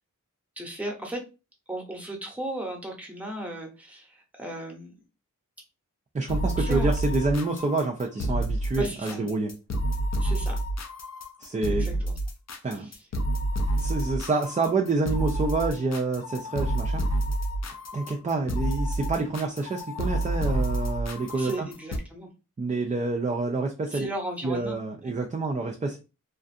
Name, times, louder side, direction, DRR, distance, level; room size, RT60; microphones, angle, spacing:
voice 1, 0.6-1.2 1.7-4.9 6.6-6.9 8.8-9.2 10.2-10.6 11.8-12.1 12.7-13.1 21.3-22.3 23.9-24.8, right 1 dB, 5° right, 1 dB, 0.7 m, -36 dB
voice 2, 6.1-9.5 11.4-11.8 12.6-12.9 13.8-17.0 17.9-21.7 22.6-24.1 24.4-26.0, right 3 dB, 25° right, 1 dB, 0.3 m, -28 dB
sound 1, 6.3-22.0, right 1 dB, 55° left, 0.5 m, -29 dB
2.5 x 2.4 x 2.5 m, 0.29 s
wide cardioid pair, 100°, 33 cm